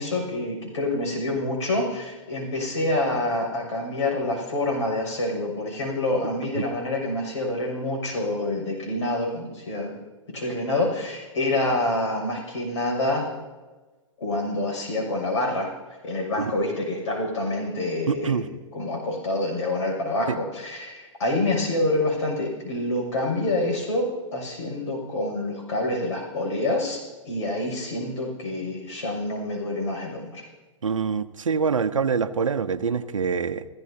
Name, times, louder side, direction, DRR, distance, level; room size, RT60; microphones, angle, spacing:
voice 1, 0.0-10.0 10.3-13.3 14.2-15.7 16.0-30.5, left 2 dB, 65° left, 0 dB, 6.4 m, -27 dB
voice 2, 18.1-18.5 20.3-20.4 30.8-33.6, right 6 dB, 75° right, 9 dB, 0.8 m, -25 dB
29.5 x 15.5 x 2.8 m, 1.2 s
figure-of-eight pair, 110°, 16 cm